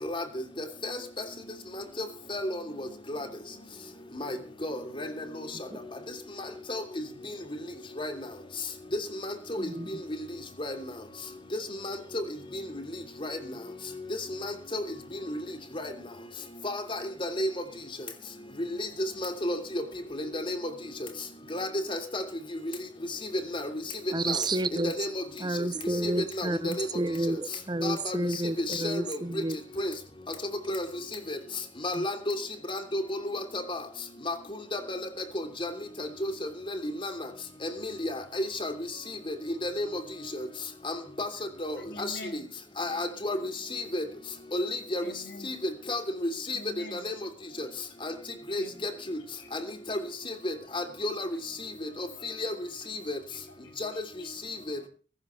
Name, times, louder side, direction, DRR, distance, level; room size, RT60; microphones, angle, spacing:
voice 1, 0.0-0.4 0.8-1.2 1.7-3.3 4.2-5.5 6.7-6.8 7.3-7.4 8.0-8.2 8.9-9.7 10.6-10.9 11.5-12.2 12.5-12.8 13.2-13.4 14.4-14.8 15.3-15.4 15.7-15.9 16.6-17.5 18.8-19.8 20.1-20.6 21.0-21.1 21.5-22.2 23.5-23.7 24.3-24.4 24.8-25.2 26.0-26.9 27.3-27.4 27.8-28.2 28.6-29.2 29.8-29.9 30.7-30.9 31.1-31.4 31.8-32.4 32.7-33.8 34.3-34.4 34.7-35.0 35.3-35.7 36.0-37.1 37.6-38.7 39.1-40.0 40.3-40.5 40.8-41.3 41.6-42.2 42.8-44.0 44.5-45.0 45.4-46.6 46.9-47.1 47.6-47.7 48.0-48.1 48.5-49.2 49.5-49.6 49.9-50.0 50.2-51.3 51.6-52.5 52.9-53.2 53.8-53.9 54.4-54.8, left 1 dB, 30° left, 3.0 m, -32 dB
voice 2, 9.6-9.9 24.1-25.0 25.4-29.6 31.9-32.0, right 2 dB, 25° right, 0.6 m, -30 dB
voice 3, 41.8-42.5 45.0-45.6 46.4-47.1 48.0-48.1 48.5-49.0 49.4-49.5 50.8-50.9 52.2-52.5 53.3-54.3 54.7-54.9, left 1 dB, 65° left, 5.5 m, -47 dB
22.0 x 13.0 x 3.2 m
head